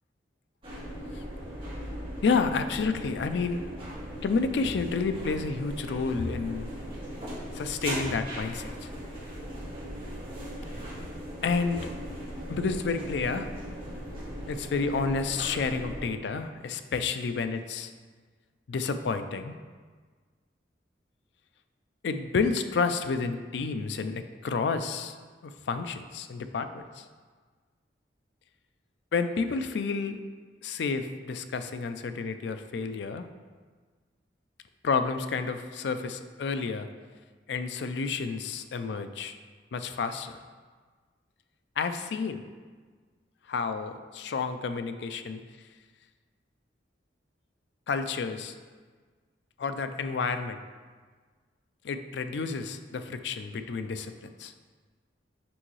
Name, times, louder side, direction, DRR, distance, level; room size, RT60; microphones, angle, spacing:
sound 1, 0.6-16.1, equal, 30° right, 1.7 m, -38 dB
voice 1, 2.2-3.7 4.2-6.7 7.5-8.9 11.4-11.9 12.5-13.5 14.5-17.9 18.7-19.6 22.0-25.2 25.4-27.1 29.1-30.2 30.6-33.3 34.8-36.9 37.5-39.4 39.7-40.3 41.8-42.4 43.5-45.4 47.9-48.5 49.6-50.6 51.8-54.5, left 4 dB, 70° left, 9 dB, 0.4 m, -30 dB
6.1 x 5.4 x 3.1 m, 1.5 s
head